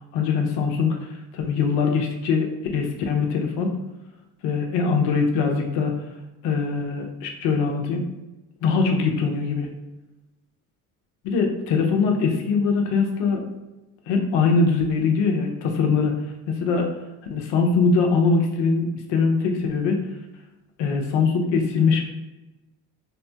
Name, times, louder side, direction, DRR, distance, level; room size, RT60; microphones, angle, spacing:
voice 1, 0.1-1.0 1.3-3.8 4.4-6.0 6.4-8.0 8.6-9.7 11.2-13.4 14.1-16.1 16.5-16.9 17.3-20.0 20.8-22.1, left 4 dB, 65° left, 2 dB, 0.8 m, -22 dB
3.2 x 2.1 x 2.8 m, 1.0 s
hypercardioid pair, 60°, 45 cm